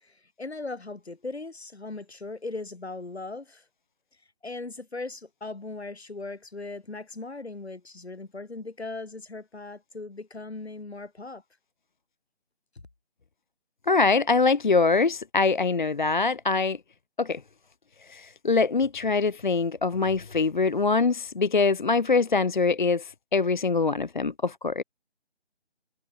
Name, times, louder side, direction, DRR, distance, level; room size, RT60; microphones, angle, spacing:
voice 1, 0.0-3.6 4.4-11.4, left 3 dB, 70° left, 7.2 m, -38 dB
voice 2, 13.9-16.8 17.2-17.4 18.1-24.8, left 4 dB, 45° left, 0.4 m, -23 dB
figure-of-eight pair, 155°, 34 cm